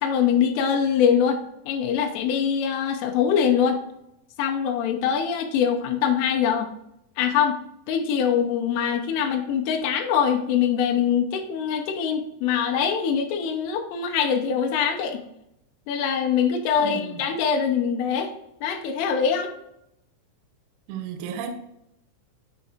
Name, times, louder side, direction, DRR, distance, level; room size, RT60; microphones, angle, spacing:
voice 1, 0.0-3.8 4.4-6.7 7.2-7.6 7.9-15.2 15.9-18.3 18.6-19.5, left 7 dB, 80° left, 3.3 m, -23 dB
voice 2, 16.8-17.3 20.9-21.5, right 7 dB, 85° right, 3.3 m, -33 dB
9.6 x 4.7 x 2.8 m
omnidirectional pair, 5.9 m